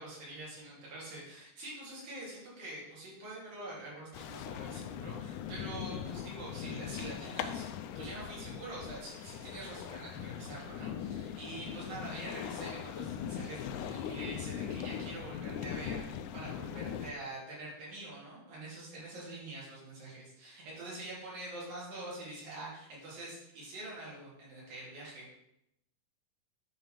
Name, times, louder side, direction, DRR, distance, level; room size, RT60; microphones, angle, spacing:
voice 1, 0.0-25.3, right 2 dB, 75° right, -6 dB, 5.1 m, -45 dB
sound 1, 4.1-17.1, left 9 dB, 80° left, 1.8 m, -40 dB
9.4 x 4.1 x 6.6 m, 0.81 s
omnidirectional pair, 4.1 m